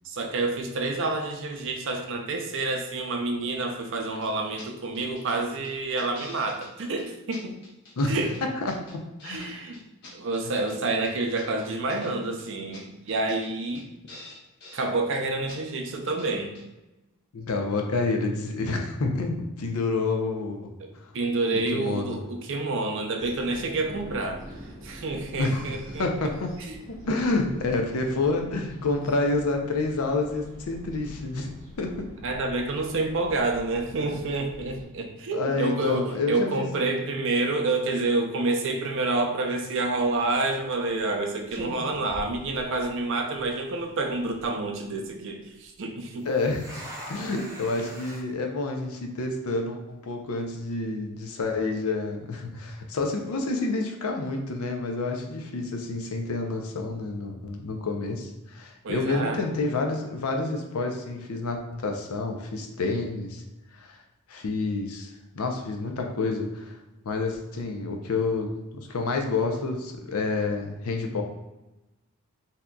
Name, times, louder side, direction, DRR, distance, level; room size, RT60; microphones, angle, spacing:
voice 1, 0.0-7.5 8.1-8.3 9.2-9.8 10.1-13.9 14.7-16.5 20.8-24.4 24.8-26.3 26.7-26.8 32.2-46.3 58.8-59.4, right 2 dB, 60° right, 4 dB, 0.5 m, -28 dB
sound 1, 4.2-4.3 4.6-4.7 4.9-5.4 5.6-6.7 7.0-7.1 7.3-8.1 8.3-9.4 9.7-10.8 11.0-12.1 12.4-12.5 12.7-12.8 13.1-13.5 13.7-13.8 14.1-14.9 15.1-15.2 15.5-15.6 15.9-16.3 16.5-16.6, left 2 dB, 50° left, 1.0 m, -47 dB
voice 2, 8.6-9.7 17.3-20.6 21.7-22.2 25.4-25.7 26.0-26.5 27.1-32.1 35.3-36.7 46.2-46.8 47.1-63.4 63.8-64.0 64.3-66.8 67.1-71.2, left 3 dB, 80° left, 3 dB, 0.5 m, -29 dB
sound 2, 23.2-34.8, right 1 dB, 35° right, 1.1 m, -45 dB
sound 3, 39.9-40.2 41.0-41.2 41.5-43.1 43.4-43.5 44.1-44.5 46.2-48.2, equal, 15° right, 0.9 m, -41 dB
3.7 x 2.7 x 2.2 m, 1.0 s
head